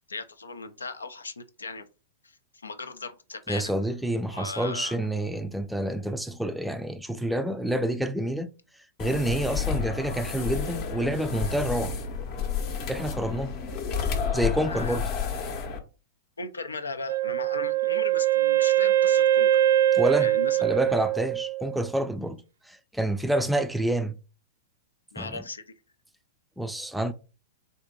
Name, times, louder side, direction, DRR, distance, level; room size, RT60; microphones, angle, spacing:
voice 1, 0.1-1.9 2.2-3.7 4.3-5.0 14.7-15.0 16.4-19.6 20.2-20.8 25.1-25.6, left 4 dB, 80° left, 0.4 m, -37 dB
voice 2, 3.5-8.5 9.0-11.9 12.9-13.5 14.3-15.0 19.9-20.3 20.6-24.2 25.2-25.4 26.6-27.1, right 1 dB, 5° right, 0.4 m, -28 dB
sound 1, 9.0-15.8, left 6 dB, 40° left, 0.7 m, -31 dB
Wind instrument woodwind instrument, 17.1-21.9, right 13 dB, 70° right, 0.5 m, -23 dB
3.5 x 2.6 x 3.6 m
figure-of-eight pair, 105°, 0 cm